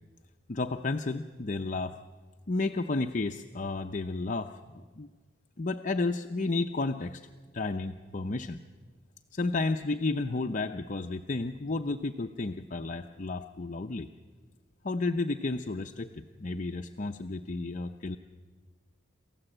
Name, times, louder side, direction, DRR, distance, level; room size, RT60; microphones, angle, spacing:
voice 1, 0.5-1.9 2.5-4.5 5.0-5.1 5.6-7.2 7.5-8.6 9.3-14.1 14.8-16.1 16.4-18.2, left 3 dB, 40° left, 5 dB, 0.6 m, -32 dB
28.0 x 14.5 x 7.8 m, 1.5 s
head